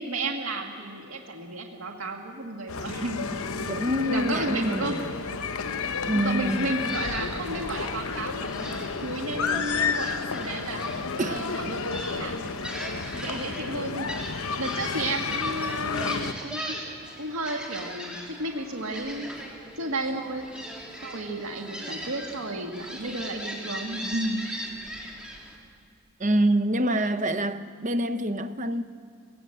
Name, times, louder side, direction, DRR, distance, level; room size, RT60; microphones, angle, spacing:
voice 1, 0.0-4.9 6.1-12.4 13.1-16.8 17.2-19.3 19.8-20.5 21.0-24.6, right 2 dB, 75° right, 1.9 m, -33 dB
sound 1, 2.7-16.3, left 5 dB, 80° left, 0.9 m, -31 dB
voice 2, 3.7-5.0 6.0-6.7 11.2-11.4 26.2-28.8, right 1 dB, 35° right, 0.9 m, -26 dB
Gull seagull, 6.5-25.6, equal, 5° right, 2.9 m, -40 dB
18.5 x 18.0 x 7.9 m
head